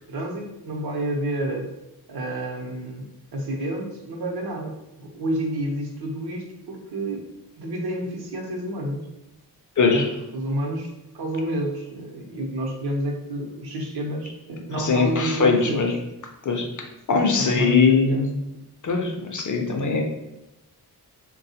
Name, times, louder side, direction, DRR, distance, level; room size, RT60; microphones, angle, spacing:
voice 1, 0.1-1.7 2.1-7.2 7.6-9.1 9.9-10.1 10.3-15.8 17.1-18.3, right 1 dB, 65° right, 0 dB, 0.7 m, -29 dB
voice 2, 9.8-10.1 14.7-16.0 16.4-18.3 18.8-20.0, left 5 dB, 50° left, 2 dB, 0.5 m, -21 dB
3.5 x 2.2 x 2.7 m, 0.94 s
wide cardioid pair, 125°, 40 cm